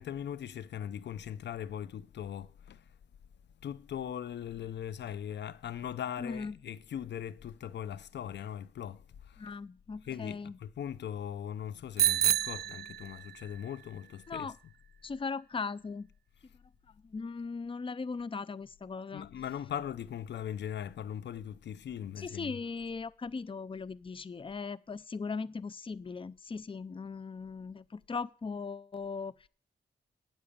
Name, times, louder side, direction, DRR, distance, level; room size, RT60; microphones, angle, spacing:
voice 1, 0.0-2.9 3.6-9.6 10.0-14.7 19.1-22.6, left 9 dB, 80° left, 0.6 m, -40 dB
voice 2, 6.2-6.5 9.4-10.5 14.3-14.5 15.0-16.1 17.0-19.3 22.2-29.5, left 4 dB, 30° left, 0.6 m, -38 dB
Bicycle bell, 12.0-13.5, right 10 dB, 65° right, 0.4 m, -29 dB
8.7 x 8.3 x 8.6 m
cardioid pair, 55°, 18 cm